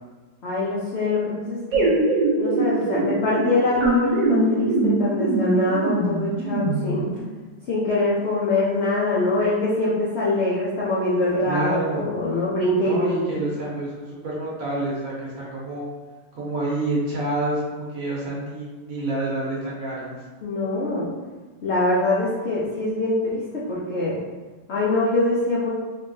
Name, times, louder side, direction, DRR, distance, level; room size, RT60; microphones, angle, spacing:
voice 1, 0.4-1.9 2.4-7.1 7.7-13.2 20.4-21.1 21.6-24.2 24.7-25.7, left 2 dB, 80° left, -7 dB, 0.6 m, -23 dB
sound 1, 1.7-7.2, right 2 dB, 85° right, 1.4 m, -22 dB
voice 2, 11.4-12.1 12.8-15.9 16.3-20.2, right 2 dB, 55° right, -6 dB, 1.2 m, -28 dB
3.5 x 3.1 x 2.6 m, 1.3 s
omnidirectional pair, 1.9 m